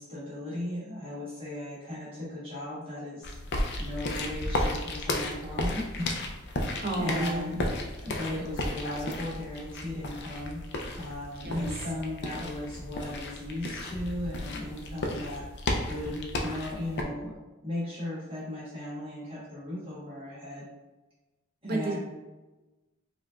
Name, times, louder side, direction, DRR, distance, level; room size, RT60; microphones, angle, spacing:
voice 1, 0.0-3.4 3.8-6.1 6.9-7.6 8.0-10.6 11.0-15.5 15.9-17.3 17.6-20.6 21.6-22.0, left 1 dB, 30° right, -9 dB, 1.2 m, -36 dB
sound 1, 3.2-17.0, left 1 dB, 55° left, 0.5 m, -34 dB
voice 2, 6.8-7.6 11.4-11.7 21.6-22.0, right 1 dB, 50° right, 0 dB, 0.7 m, -30 dB
4.9 x 2.6 x 2.4 m, 1.1 s
head